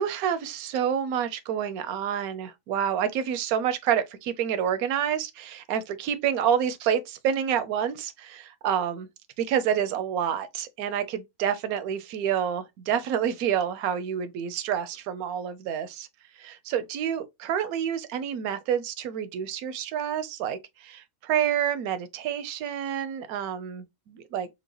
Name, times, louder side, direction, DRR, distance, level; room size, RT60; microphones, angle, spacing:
voice 1, 0.0-9.1 9.4-16.1 16.4-24.5, right 9 dB, 85° right, 1.1 m, -28 dB
4.5 x 2.3 x 2.9 m
omnidirectional pair, 1.5 m